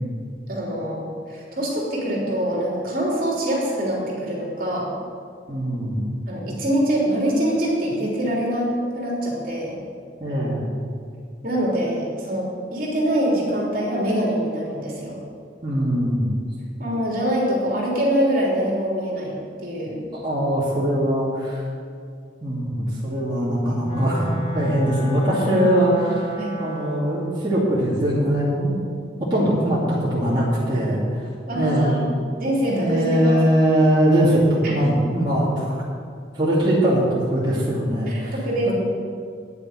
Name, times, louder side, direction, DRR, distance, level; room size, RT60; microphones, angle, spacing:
voice 1, 0.5-4.9 6.3-9.8 11.4-15.2 16.8-19.3 19.6-20.0 26.4-26.6 31.5-32.1 32.4-33.3 34.6-34.7 38.1-38.7, equal, 50° right, -4 dB, 3.3 m, -24 dB
voice 2, 5.5-6.1 10.2-10.7 15.6-16.3 20.1-21.7 22.4-24.3 24.5-28.8 29.3-31.3 31.5-32.0 32.7-35.8 36.3-38.3 38.6-38.7, right 1 dB, 25° right, -8 dB, 2.5 m, -21 dB
Wind instrument woodwind instrument, 23.8-27.2, right 1 dB, 40° left, 2.0 m, -32 dB
9.7 x 7.5 x 9.2 m, 2.2 s
head